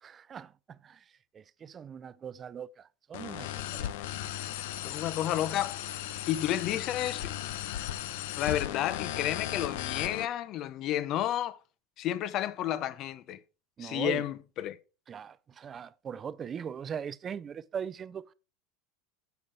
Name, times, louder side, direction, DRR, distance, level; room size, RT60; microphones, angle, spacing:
voice 1, 0.0-1.0 1.3-3.9 13.8-14.2 15.1-18.3, right 7 dB, 25° right, 0.4 m, -40 dB
sound 1, 3.1-10.2, left 12 dB, 85° left, 0.8 m, -36 dB
voice 2, 4.8-5.8 6.3-7.3 8.4-11.6 12.0-13.4 13.8-14.8, left 12 dB, 40° left, 0.6 m, -31 dB
9.3 x 6.9 x 3.3 m
supercardioid pair, 145°, 0 cm